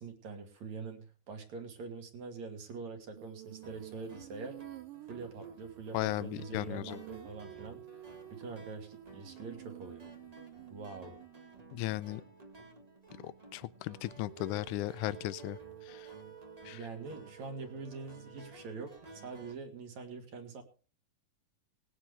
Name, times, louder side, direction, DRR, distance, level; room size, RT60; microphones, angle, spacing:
voice 1, 0.0-4.6 5.0-7.8 8.3-10.0 10.7-11.1 16.7-20.6, right 4 dB, 55° right, 6 dB, 2.9 m, -44 dB
Female singing, 3.1-12.0 14.2-18.4, right 15 dB, 75° right, 2.2 m, -51 dB
sound 1, 3.6-19.5, right 2 dB, 30° right, 0.7 m, -54 dB
voice 2, 5.9-7.0 11.7-12.2 13.2-16.1 16.7-16.9, left 16 dB, 80° left, 16 dB, 1.8 m, -36 dB
20.0 x 9.7 x 3.4 m, 0.38 s
omnidirectional pair, 4.3 m